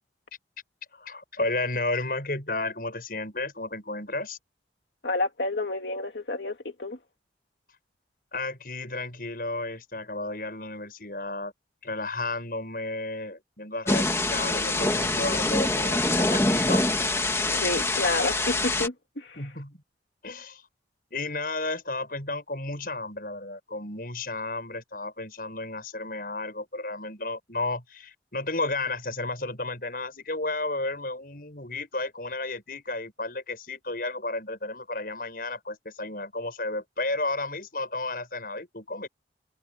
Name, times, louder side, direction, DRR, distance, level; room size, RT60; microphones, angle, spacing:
voice 1, 0.9-4.4 8.3-11.5 11.8-16.8 19.4-19.8 20.2-20.6 21.1-39.1, left 2 dB, 50° left, 7.9 m, -33 dB
voice 2, 5.0-7.0 17.5-19.4, left 2 dB, 70° left, 2.6 m, -30 dB
Thunder / Rain, 13.9-18.9, left 2 dB, 15° left, 2.0 m, -25 dB
head